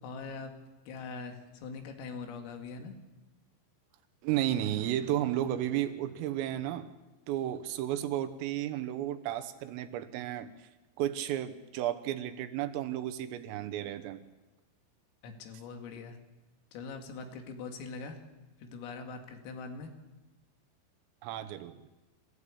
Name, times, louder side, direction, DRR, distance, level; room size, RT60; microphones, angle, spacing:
voice 1, 0.0-0.5 0.9-3.0 15.2-16.2 16.7-18.2 18.6-19.9, left 4 dB, 90° left, 5 dB, 4.9 m, -42 dB
voice 2, 4.2-6.9 7.3-10.5 11.0-14.2 21.2-21.8, right 12 dB, 85° right, 10 dB, 3.8 m, -33 dB
27.5 x 15.0 x 8.5 m, 1.1 s
omnidirectional pair, 5.8 m